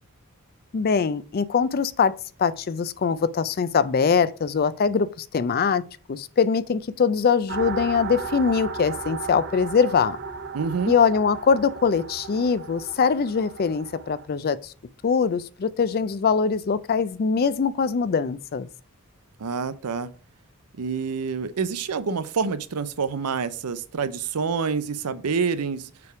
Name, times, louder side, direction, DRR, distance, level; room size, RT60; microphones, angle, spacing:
voice 1, 0.7-5.8 6.1-10.2 10.9-14.7 15.0-18.7, left 6 dB, 45° left, 0.4 m, -22 dB
sound 1, 7.5-14.3, right 5 dB, 50° right, 0.8 m, -35 dB
voice 2, 10.5-10.9 19.4-20.1 20.7-25.9, right 5 dB, 90° right, 0.6 m, -27 dB
6.7 x 3.5 x 4.7 m
head